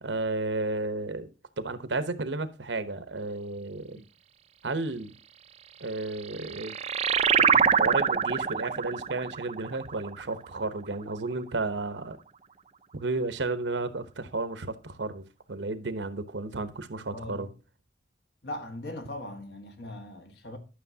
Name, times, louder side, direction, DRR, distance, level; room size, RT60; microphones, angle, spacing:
voice 1, 0.0-1.3 1.6-4.0 4.6-5.1 5.8-6.8 7.4-12.2 12.9-17.5, right 3 dB, 85° right, 1.0 m, -33 dB
sound 1, 6.0-11.1, right 7 dB, 35° right, 0.4 m, -26 dB
voice 2, 17.1-17.5 18.4-20.6, left 1 dB, 65° left, 1.6 m, -39 dB
11.5 x 6.4 x 2.8 m
head